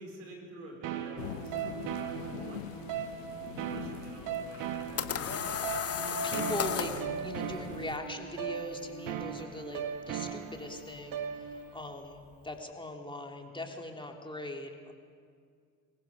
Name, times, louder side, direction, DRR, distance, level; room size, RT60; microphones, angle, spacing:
voice 1, 0.0-5.6, right 1 dB, 75° right, 1 dB, 5.0 m, -50 dB
sound 1, 0.8-11.8, right 9 dB, 55° right, 1.7 m, -38 dB
sound 2, 1.2-8.0, left 12 dB, 75° left, 0.7 m, -45 dB
sound 3, 4.5-7.1, left 7 dB, 35° left, 1.5 m, -33 dB
voice 2, 6.1-14.9, left 2 dB, 10° left, 2 dB, 2.9 m, -40 dB
25.5 x 21.0 x 5.3 m, 2.1 s
figure-of-eight pair, 50°, 39 cm